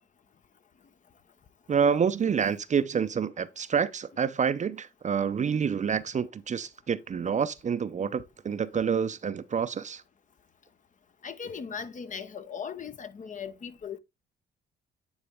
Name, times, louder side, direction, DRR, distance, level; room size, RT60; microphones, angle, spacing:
voice 1, 1.7-10.0, right 7 dB, 35° right, 0.6 m, -28 dB
voice 2, 11.2-14.0, left 6 dB, 40° left, 0.8 m, -38 dB
9.6 x 4.1 x 3.5 m
cardioid pair, 90°, 20 cm